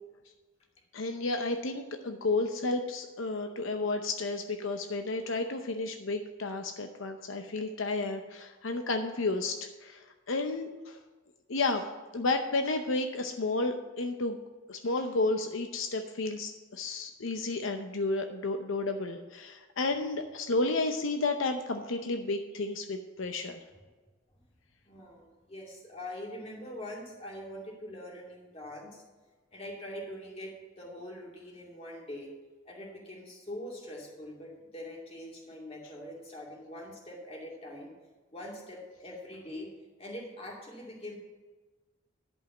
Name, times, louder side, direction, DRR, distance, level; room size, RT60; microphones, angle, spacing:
voice 1, 0.9-10.0 10.3-11.0 11.5-14.4 14.7-23.6, left 3 dB, 75° left, 5 dB, 0.7 m, -32 dB
voice 2, 24.9-29.0 29.5-32.3 32.7-37.9 38.3-39.7 40.0-41.2, left 1 dB, 30° left, -2 dB, 2.6 m, -43 dB
11.5 x 5.5 x 7.2 m, 1.3 s
head